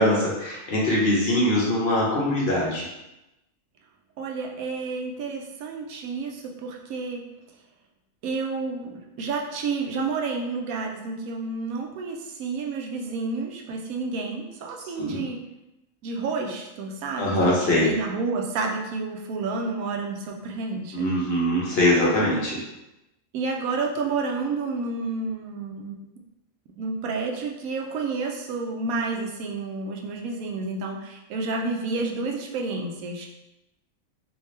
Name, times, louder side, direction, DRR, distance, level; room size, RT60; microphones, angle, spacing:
voice 1, 0.0-2.9 15.0-15.2 17.2-17.9 20.9-22.6, left 1 dB, 50° left, -5 dB, 1.0 m, -22 dB
voice 2, 4.2-7.2 8.2-15.4 16.0-21.1 23.3-26.0 26.7-33.3, right 4 dB, 85° right, 1 dB, 1.1 m, -30 dB
3.5 x 2.6 x 3.1 m, 0.93 s
omnidirectional pair, 1.4 m